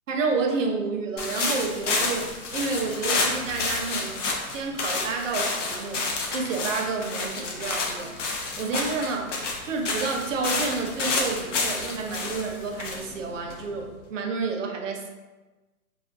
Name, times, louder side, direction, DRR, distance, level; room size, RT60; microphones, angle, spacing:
voice 1, 0.1-8.1 8.6-9.4 9.6-15.1, right 4 dB, 60° right, 3 dB, 0.5 m, -30 dB
sound 1, 1.2-14.0, left 3 dB, 55° left, 0.6 m, -29 dB
2.4 x 2.2 x 2.4 m, 1.2 s
hypercardioid pair, 140°, 44 cm